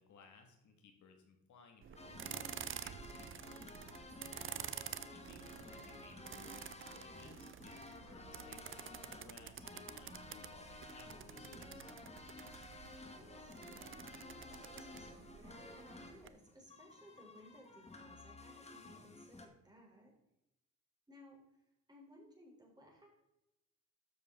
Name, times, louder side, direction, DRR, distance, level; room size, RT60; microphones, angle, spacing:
voice 1, 0.0-3.5 4.3-11.9, left 5 dB, 70° left, 4 dB, 2.1 m, -62 dB
sound 1, 1.8-16.3, right 9 dB, 45° right, 0.6 m, -50 dB
sound 2, 2.0-19.5, left 2 dB, 20° left, 1.6 m, -53 dB
voice 2, 13.0-20.2 21.1-21.4 21.9-23.1, equal, 15° right, -1 dB, 4.0 m, -61 dB
13.0 x 6.9 x 3.9 m, 0.89 s
cardioid pair, 90°, 30 cm